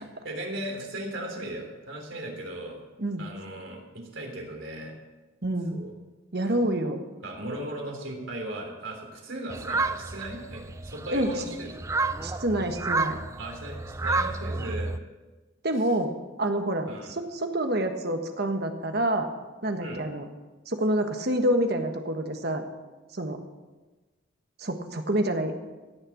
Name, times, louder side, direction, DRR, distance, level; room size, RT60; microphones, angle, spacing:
voice 1, 0.0-2.8 3.2-4.9 5.7-5.9 7.2-11.7 13.4-14.9 16.9-17.1 19.8-20.0, right 1 dB, 65° right, 1 dB, 3.5 m, -37 dB
voice 2, 5.4-5.8 6.3-7.0 11.1-11.4 12.2-13.2 15.6-16.1 16.4-19.3 19.6-20.3 20.7-22.6 23.1-23.4 24.6-25.5, right 1 dB, 50° right, 5 dB, 1.4 m, -27 dB
sound 1, 9.5-15.0, right 3 dB, 15° right, 0.4 m, -30 dB
16.5 x 6.7 x 8.5 m, 1.2 s
head